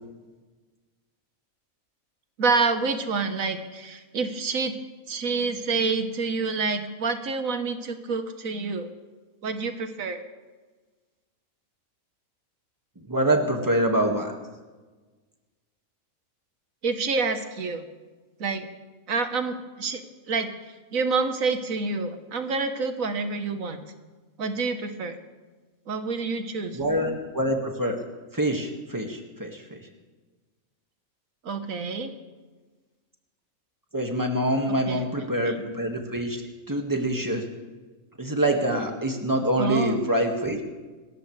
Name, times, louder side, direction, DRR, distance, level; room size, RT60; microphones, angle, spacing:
voice 1, 2.4-4.7 5.1-8.9 9.4-10.2 16.8-17.8 18.4-18.7 19.1-20.0 20.3-20.5 20.9-23.8 24.4-25.2 25.9-26.7 31.4-32.1 34.7-35.1 35.4-35.5 39.6-40.0, right 4 dB, 75° right, 8 dB, 1.6 m, -27 dB
voice 2, 13.0-14.3 26.7-28.0 28.3-29.8 33.9-36.4 36.7-37.4 38.2-40.6, right 1 dB, 15° right, 2 dB, 1.9 m, -25 dB
27.0 x 13.5 x 3.3 m, 1.3 s
omnidirectional pair, 1.5 m